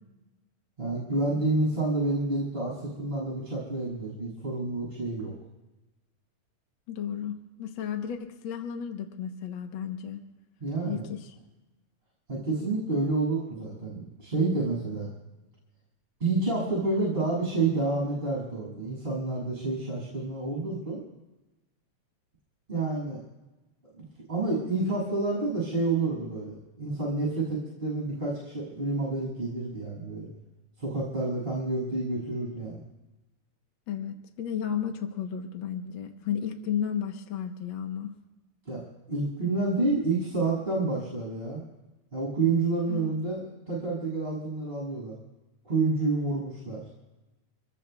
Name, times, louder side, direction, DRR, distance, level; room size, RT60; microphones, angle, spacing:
voice 1, 0.8-5.3 10.6-11.1 12.3-15.1 16.2-21.0 22.7-23.2 24.0-30.3 30.8-32.8 38.7-41.6 42.1-45.2 45.6-46.9, right 3 dB, 15° right, -4 dB, 7.5 m, -29 dB
voice 2, 6.9-10.2 10.9-11.3 33.9-38.1 42.9-43.1, left 8 dB, 55° left, 4 dB, 1.4 m, -33 dB
28.0 x 21.0 x 2.4 m, 1.1 s
omnidirectional pair, 3.4 m